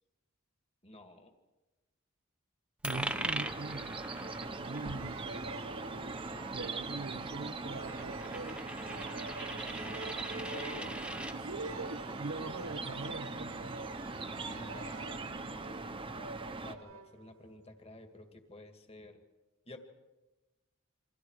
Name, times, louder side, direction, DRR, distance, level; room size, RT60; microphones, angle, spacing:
voice 1, 0.8-1.3 4.9-5.2 9.5-10.1 10.3-11.0 14.4-15.2 16.6-19.2 19.7-19.8, left 2 dB, 30° left, 5 dB, 2.2 m, -51 dB
Coin (dropping), 2.8-11.4, right 1 dB, 5° right, 1.0 m, -42 dB
voice 2, 2.8-4.0 4.6-8.6 11.3-13.8, right 3 dB, 65° right, 6 dB, 1.0 m, -43 dB
sound 1, 2.9-16.7, right 3 dB, 25° right, 1.2 m, -41 dB
sound 2, 4.2-17.7, right 4 dB, 90° right, 1.0 m, -48 dB
28.5 x 25.5 x 4.9 m, 1.1 s
head